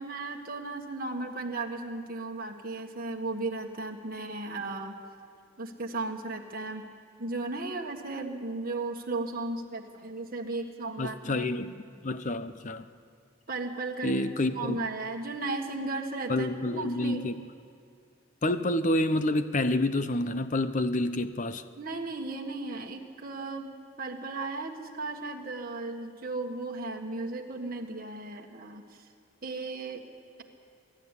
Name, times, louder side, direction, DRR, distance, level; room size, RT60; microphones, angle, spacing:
voice 1, 0.0-5.0 5.6-6.8 7.2-11.5 13.5-14.3 14.5-17.2 21.7-29.0 29.4-30.0, right 3 dB, 45° right, 1 dB, 1.6 m, -35 dB
voice 2, 11.0-12.9 14.0-14.8 16.3-17.4 18.4-21.6, left 1 dB, 35° left, 11 dB, 0.7 m, -28 dB
22.5 x 12.5 x 9.9 m, 2.3 s
head